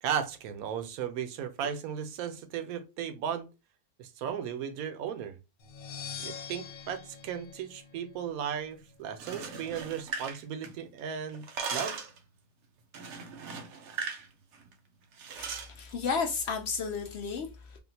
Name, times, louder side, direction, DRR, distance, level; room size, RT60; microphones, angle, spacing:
voice 1, 0.0-3.5 4.0-5.4 6.2-12.0, right 8 dB, 90° right, 1.1 m, -36 dB
sound 1, 5.6-8.5, left 7 dB, 85° left, 1.1 m, -44 dB
sound 2, 9.1-11.0 11.3-12.2 12.9-14.3 14.5-14.7 15.2-15.7, right 5 dB, 65° right, 0.8 m, -38 dB
voice 2, 15.4-17.8, left 5 dB, 65° left, 0.7 m, -33 dB
3.5 x 2.4 x 2.7 m
omnidirectional pair, 1.4 m